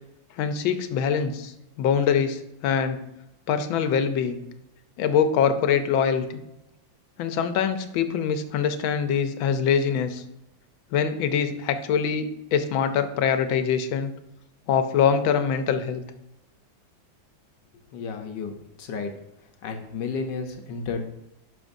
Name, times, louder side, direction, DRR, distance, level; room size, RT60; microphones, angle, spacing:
voice 1, 0.4-1.5 1.8-3.0 3.5-4.4 5.0-6.2 7.2-10.2 10.9-12.3 12.5-14.1 14.7-16.0, left 7 dB, 85° left, 9 dB, 1.5 m, -23 dB
voice 2, 17.9-18.5 18.8-19.1 19.6-21.1, left 5 dB, 70° left, 5 dB, 1.4 m, -32 dB
11.0 x 6.0 x 2.6 m, 0.86 s
omnidirectional pair, 2.1 m